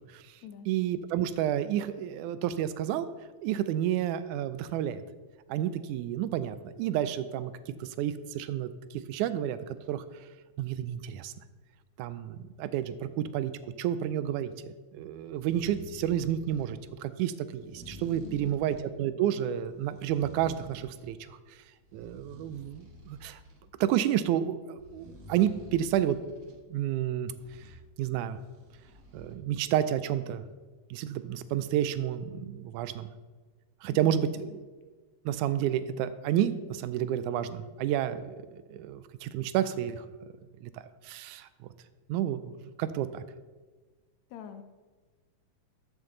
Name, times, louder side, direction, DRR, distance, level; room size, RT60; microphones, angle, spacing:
voice 1, 0.0-0.4 0.7-3.1 3.4-5.0 5.5-7.5 7.8-10.0 10.6-11.3 12.0-13.5 13.8-21.4 21.9-23.4 23.8-26.2 26.7-27.3 28.0-28.4 29.1-30.4 30.9-33.1 33.8-34.6 35.3-40.1 40.6-40.7 41.0-41.5 42.1-43.2, right 11 dB, 85° right, 13 dB, 2.0 m, -30 dB
sound 1, 15.2-16.8 17.5-18.9 19.6-21.2 21.6-23.6 24.8-26.6 27.3-27.8 28.3-29.4, equal, 60° right, 2.6 m, -51 dB
voice 2, 18.2-18.7 33.9-34.6 44.3-44.6, left 7 dB, 75° left, 8 dB, 1.9 m, -46 dB
13.0 x 7.8 x 3.9 m, 1.3 s
omnidirectional pair, 3.4 m